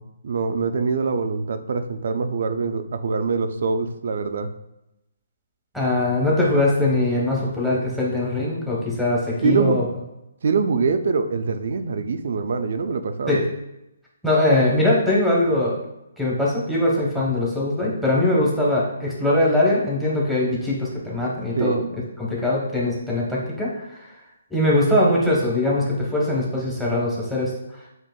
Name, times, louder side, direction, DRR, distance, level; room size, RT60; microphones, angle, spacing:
voice 1, 0.0-4.5 9.4-9.8 10.4-13.4 21.6-21.9, right 4 dB, 65° right, 9 dB, 0.4 m, -24 dB
voice 2, 5.7-9.8 13.3-13.5 14.2-15.8 16.2-21.8 22.2-24.0 24.5-27.5, left 1 dB, 5° left, -6 dB, 1.0 m, -21 dB
7.4 x 2.5 x 2.3 m, 0.88 s
hypercardioid pair, 155°, 0 cm